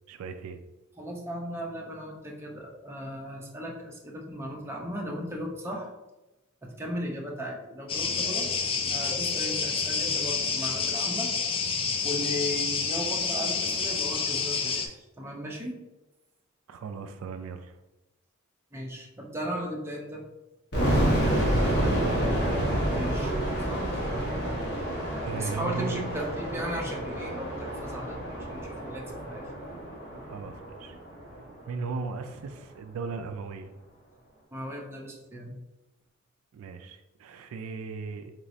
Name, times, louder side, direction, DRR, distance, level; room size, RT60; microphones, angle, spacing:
voice 1, 0.1-0.6 16.7-17.8 21.0-22.2 25.2-26.1 30.2-31.0 31.7-33.7 36.5-38.3, right 4 dB, 75° right, 8 dB, 0.3 m, -37 dB
voice 2, 1.0-5.9 6.6-8.5 8.8-11.3 12.0-15.8 18.7-20.3 22.9-24.1 25.3-29.5 34.5-35.5, equal, 10° right, -2 dB, 0.6 m, -36 dB
sound 1, 7.9-14.9, left 5 dB, 25° left, 0.3 m, -28 dB
sound 2, 20.7-31.6, right 1 dB, 55° left, 1.1 m, -29 dB
4.0 x 3.0 x 2.6 m, 0.99 s
head